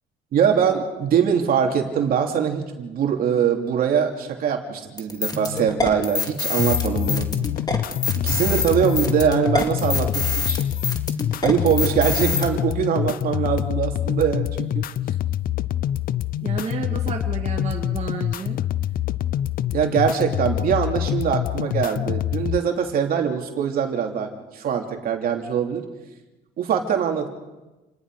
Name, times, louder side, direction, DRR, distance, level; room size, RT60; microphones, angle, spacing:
voice 1, 0.3-7.3 8.2-10.6 11.4-14.8 19.7-25.8 26.6-27.3, right 7 dB, 60° right, 3 dB, 3.0 m, -22 dB
sound 1, 5.0-12.5, left 4 dB, 25° left, 2.4 m, -26 dB
sound 2, 6.6-22.6, left 11 dB, 60° left, 0.6 m, -26 dB
voice 2, 16.4-18.6, right 6 dB, 40° right, 1 dB, 2.2 m, -31 dB
28.5 x 20.0 x 4.9 m, 1.1 s
cardioid pair, 110°, 17 cm